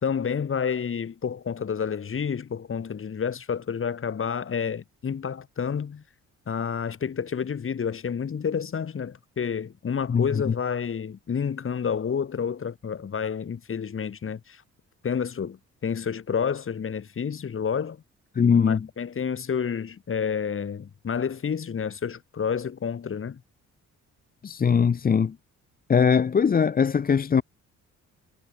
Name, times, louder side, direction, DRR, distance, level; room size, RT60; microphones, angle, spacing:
voice 1, 0.0-6.0 6.5-14.6 15.0-18.0 18.7-23.4, left 7 dB, 45° left, 3.6 m, -29 dB
voice 2, 10.1-10.5 18.4-18.9 24.4-25.4 25.9-27.4, left 6 dB, 30° left, 0.7 m, -21 dB
cardioid pair, 90°, 30 cm